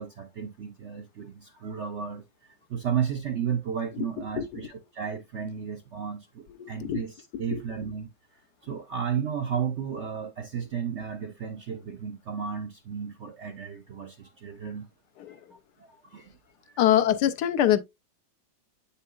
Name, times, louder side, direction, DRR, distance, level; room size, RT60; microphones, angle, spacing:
voice 1, 0.0-8.1 8.6-14.9 15.8-16.4 16.6-16.8, right 7 dB, 65° right, 0.7 m, -33 dB
voice 2, 6.6-7.0 7.5-7.6 15.2-15.4 16.8-17.8, left 11 dB, 75° left, 1.2 m, -24 dB
7.7 x 5.6 x 2.4 m
omnidirectional pair, 1.9 m